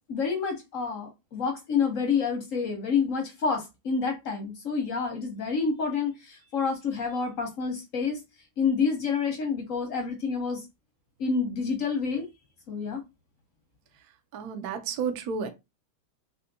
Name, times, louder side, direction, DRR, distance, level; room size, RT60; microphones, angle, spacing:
voice 1, 0.1-8.2 8.6-10.6 11.2-12.3 12.7-13.0, left 5 dB, 60° left, 0.8 m, -28 dB
voice 2, 14.3-15.5, right 6 dB, 75° right, 0.8 m, -31 dB
3.4 x 2.6 x 2.6 m
omnidirectional pair, 2.2 m